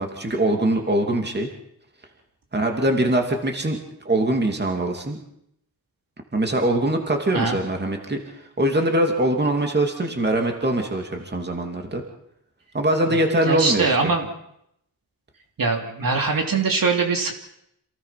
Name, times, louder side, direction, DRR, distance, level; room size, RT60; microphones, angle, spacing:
voice 1, 0.0-1.5 2.5-3.8 4.0-5.2 6.3-8.2 8.6-12.0 12.7-14.1, right 1 dB, 25° right, 3 dB, 2.7 m, -22 dB
voice 2, 13.4-14.3 15.6-17.3, right 4 dB, 60° right, 3 dB, 2.9 m, -22 dB
27.5 x 18.0 x 5.9 m, 0.75 s
wide cardioid pair, 160°, 39 cm